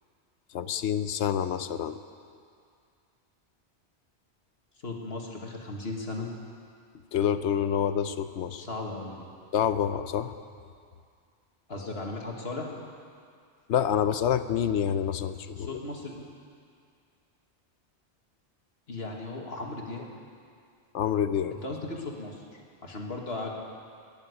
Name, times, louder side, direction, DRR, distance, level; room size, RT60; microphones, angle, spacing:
voice 1, 0.5-2.0 7.1-8.6 9.5-10.3 13.7-15.8 20.9-21.6, left 9 dB, 75° left, 11 dB, 1.0 m, -27 dB
voice 2, 4.8-6.3 8.6-9.3 11.7-12.7 15.6-16.1 18.9-20.1 21.5-23.5, left 2 dB, 60° left, 0 dB, 2.1 m, -36 dB
19.5 x 7.2 x 9.6 m, 2.3 s
omnidirectional pair, 1.2 m